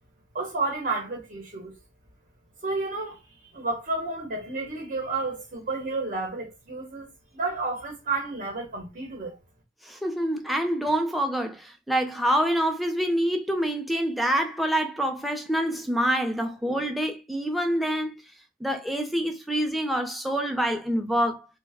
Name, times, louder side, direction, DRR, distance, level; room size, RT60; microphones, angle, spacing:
voice 1, 0.3-1.7 2.6-3.2 3.5-7.1 7.3-9.4, right 3 dB, 45° right, 0.8 m, -31 dB
voice 2, 9.8-18.2 18.6-21.5, equal, ahead, 0.4 m, -26 dB
3.1 x 2.1 x 3.4 m
head